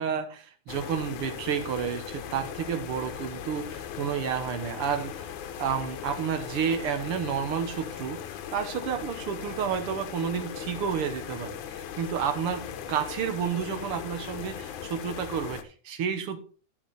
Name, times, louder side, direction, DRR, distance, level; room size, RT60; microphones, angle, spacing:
voice 1, 0.0-5.3 5.6-8.2 8.5-16.4, right 7 dB, 60° right, 6 dB, 1.8 m, -31 dB
sound 1, 0.7-15.6, left 9 dB, 80° left, 2.2 m, -39 dB
12.0 x 6.0 x 4.1 m, 0.39 s
omnidirectional pair, 3.4 m